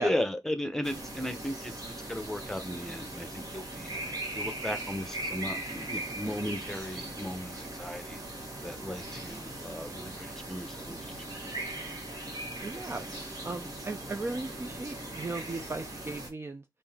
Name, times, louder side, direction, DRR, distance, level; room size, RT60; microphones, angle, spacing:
voice 1, 0.0-1.7 2.1-8.2 8.6-11.0, left 1 dB, 5° left, 0.8 m, -36 dB
sound 1, 0.8-16.3, right 1 dB, 55° right, 1.6 m, -39 dB
voice 2, 12.6-13.0 13.4-16.6, right 3 dB, 30° right, 0.5 m, -36 dB
5.5 x 2.6 x 3.5 m
wide cardioid pair, 120°, 8 cm